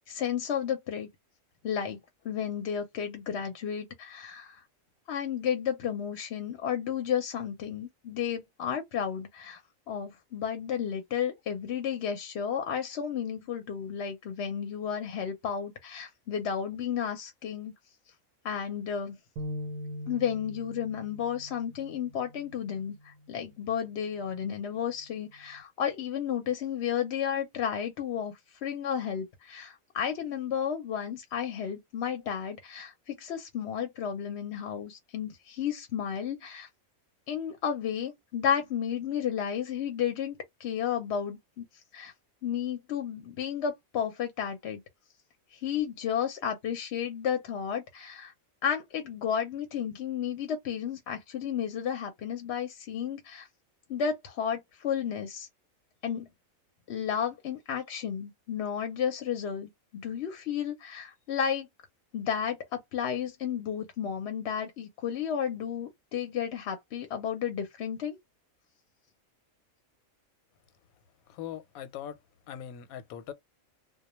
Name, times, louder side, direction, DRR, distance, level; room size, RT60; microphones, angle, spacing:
voice 1, 0.1-1.1 1.6-2.0 2.2-4.6 5.1-9.6 9.9-17.7 18.4-19.2 20.1-28.3 28.6-36.7 37.3-41.6 41.9-42.1 42.4-44.8 45.5-48.3 48.6-53.5 53.9-55.5 56.0-56.3 56.9-61.7 62.1-68.2, left 8 dB, 60° left, 0.7 m, -32 dB
sound 1, 19.4-25.6, equal, 85° right, 1.0 m, -43 dB
voice 2, 71.3-72.2 72.5-73.3, left 10 dB, 90° left, 1.0 m, -41 dB
2.2 x 2.1 x 2.9 m
omnidirectional pair, 1.4 m